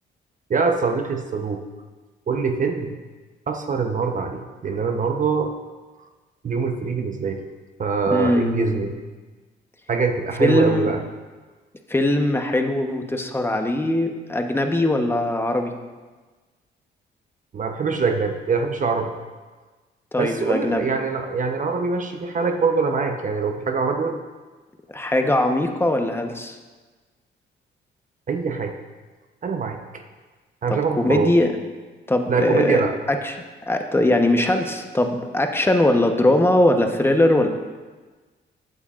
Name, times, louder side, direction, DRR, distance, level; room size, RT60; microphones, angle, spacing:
voice 1, 0.5-1.6 2.3-3.0 3.5-5.5 6.4-7.4 7.8-8.9 9.9-11.0 17.5-19.1 20.2-24.2 28.3-28.7 29.4-29.8 30.6-31.3 32.3-32.9, right 5 dB, 40° right, 4 dB, 0.9 m, -23 dB
voice 2, 8.1-8.7 10.4-10.9 11.9-15.7 20.1-20.8 24.9-26.6 30.7-31.5 32.1-32.8 33.1-33.4 33.7-37.5, left 1 dB, 10° left, 4 dB, 1.0 m, -20 dB
15.0 x 8.5 x 2.5 m, 1.3 s
cardioid pair, 90°, 20 cm